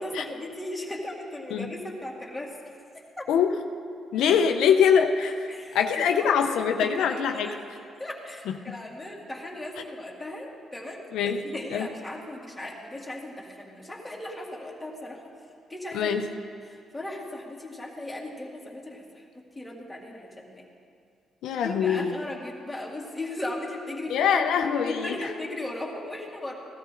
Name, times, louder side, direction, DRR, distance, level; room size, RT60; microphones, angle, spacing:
voice 1, 0.0-2.6 2.9-3.3 5.5-6.3 6.8-7.6 8.0-11.0 11.4-15.3 15.7-16.1 16.6-19.2 19.6-20.7 21.6-26.5, left 1 dB, 5° left, -3 dB, 2.2 m, -37 dB
voice 2, 4.1-5.4 5.7-7.5 8.5-8.8 11.1-11.4 11.7-11.9 15.9-16.2 21.4-22.1 24.1-25.1, left 7 dB, 85° left, 5 dB, 0.6 m, -23 dB
16.0 x 13.0 x 3.8 m, 2.3 s
cardioid pair, 90°, 0 cm